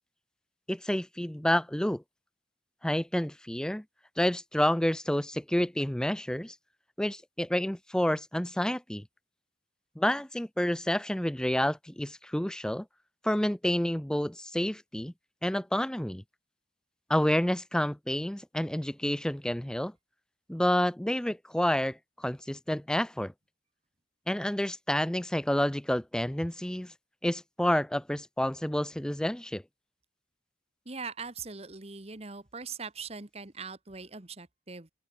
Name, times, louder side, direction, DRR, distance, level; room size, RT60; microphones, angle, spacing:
voice 1, 0.7-2.0 2.8-3.8 4.2-6.6 7.0-9.0 10.0-12.9 13.2-15.1 15.4-16.2 17.1-19.9 20.5-23.3 24.3-26.9 27.2-29.6, left 1 dB, 5° left, 0.4 m, -29 dB
voice 2, 30.8-34.9, right 5 dB, 35° right, 1.5 m, -41 dB
open air
head